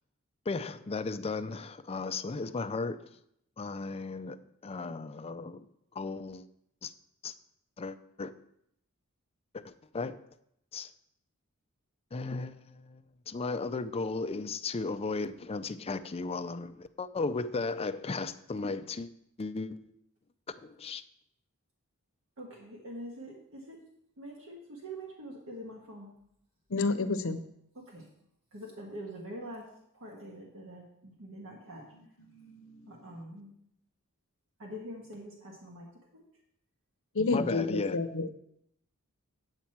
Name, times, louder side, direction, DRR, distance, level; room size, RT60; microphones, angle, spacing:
voice 1, 0.5-3.1 3.6-5.7 5.9-6.5 6.8-6.9 7.2-7.3 7.8-8.3 9.5-10.2 10.7-10.9 12.1-19.1 19.4-19.9 20.6-21.0 37.3-38.0, left 3 dB, 25° left, 0.4 m, -35 dB
voice 2, 22.4-23.8 24.2-26.1 27.9-28.1 28.5-29.7 29.9-31.8 32.9-33.5 34.6-36.2, right 1 dB, 65° right, 1.7 m, -44 dB
voice 3, 26.7-27.4 31.9-33.0 37.1-38.3, left 3 dB, 65° left, 0.8 m, -31 dB
8.6 x 8.1 x 4.5 m
head